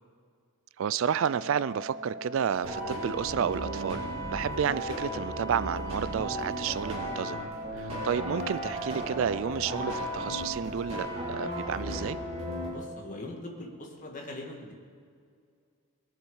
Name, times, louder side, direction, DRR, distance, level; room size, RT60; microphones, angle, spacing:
voice 1, 0.8-4.0 4.3-7.4 7.7-12.2, right 8 dB, 60° right, 17 dB, 0.3 m, -31 dB
Organ, 1.1-12.2, right 1 dB, 10° left, 4.3 m, -43 dB
sound 1, 2.5-12.7, right 1 dB, 25° right, 3.4 m, -35 dB
voice 2, 12.7-14.7, left 1 dB, 35° left, 1 dB, 1.9 m, -41 dB
20.5 x 7.4 x 7.2 m, 2.2 s
head